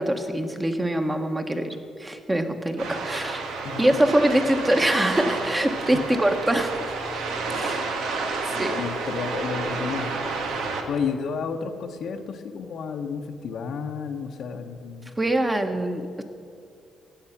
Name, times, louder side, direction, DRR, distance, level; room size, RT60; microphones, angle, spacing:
voice 1, 0.0-3.5 3.8-6.7 7.5-7.8 8.4-8.7 15.2-16.2, right 1 dB, 15° right, 6 dB, 1.2 m, -24 dB
sound 1, 2.8-10.8, right 4 dB, 90° right, 1.5 m, -30 dB
voice 2, 7.4-7.9 8.5-10.2 10.9-15.1, left 6 dB, 70° left, 4 dB, 1.0 m, -32 dB
16.0 x 9.0 x 5.9 m, 2.4 s
cardioid pair, 90°, 0 cm